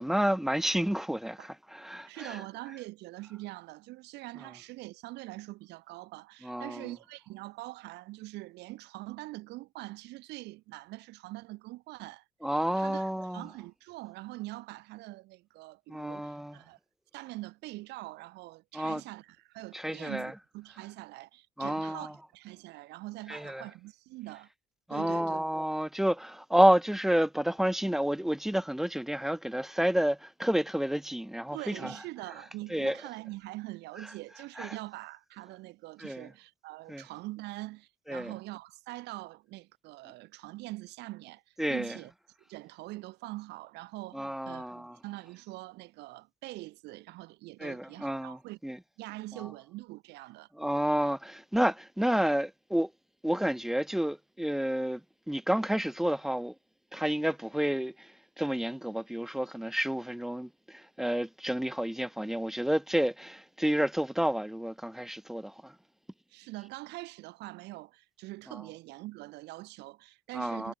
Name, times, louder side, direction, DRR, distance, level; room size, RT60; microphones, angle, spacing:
voice 1, 0.0-2.4 6.4-6.9 12.4-13.5 15.9-16.6 18.7-19.0 19.7-20.3 21.6-22.1 23.3-23.7 24.9-32.0 32.7-33.0 34.6-34.7 36.0-36.3 36.9-37.0 38.1-38.3 41.6-42.0 44.1-45.0 47.6-48.8 50.5-52.9 53.2-55.0 55.3-56.5 56.9-65.8 68.5-68.6 70.3-70.7, equal, ahead, 0.4 m, -30 dB
voice 2, 2.1-12.2 12.8-16.8 17.1-24.5 24.9-25.4 31.5-42.1 42.5-48.6 49.0-50.5 66.3-70.7, right 20 dB, 85° right, 2.2 m, -43 dB
cardioid pair, 110°, 17 cm